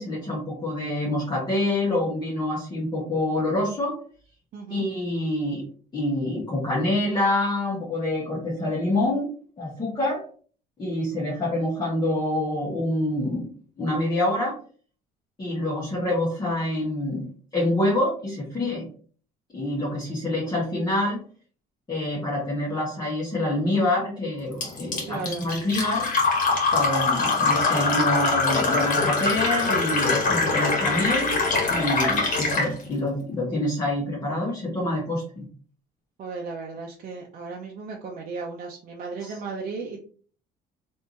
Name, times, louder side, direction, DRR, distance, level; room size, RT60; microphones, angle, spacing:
voice 1, 0.0-4.0 4.7-5.6 5.9-9.3 9.6-10.3 10.8-13.5 13.8-14.6 15.4-18.9 19.5-21.2 21.9-26.1 26.7-31.4 31.7-35.5 39.2-39.3, left 1 dB, 25° left, -5 dB, 1.2 m, -26 dB
voice 2, 4.5-4.9 25.1-25.5 36.2-40.0, right 4 dB, 55° right, -1 dB, 0.6 m, -35 dB
Fill (with liquid), 24.6-32.7, left 3 dB, 50° left, 1.4 m, -23 dB
3.3 x 2.6 x 2.9 m, 0.43 s
cardioid pair, 110°, 17 cm